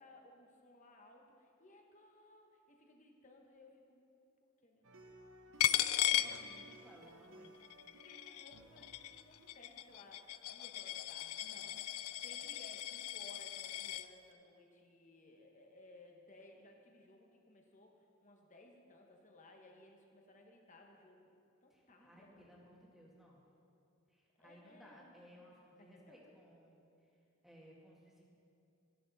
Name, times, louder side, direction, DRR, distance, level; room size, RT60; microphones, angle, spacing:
voice 1, 0.0-4.0 4.6-4.8 8.0-11.8 12.2-21.3 21.6-22.5 24.4-25.5 25.8-25.9, left 1 dB, 35° left, 2 dB, 1.3 m, -60 dB
sound 1, 4.8-10.5, right 2 dB, 70° right, 0.9 m, -59 dB
Coin (dropping), 5.6-7.1 7.4-14.1, left 13 dB, 85° left, 0.4 m, -37 dB
voice 2, 5.8-7.7 21.7-23.4 24.1-28.2, equal, ahead, -5 dB, 2.0 m, -61 dB
14.0 x 10.5 x 4.2 m, 2.5 s
head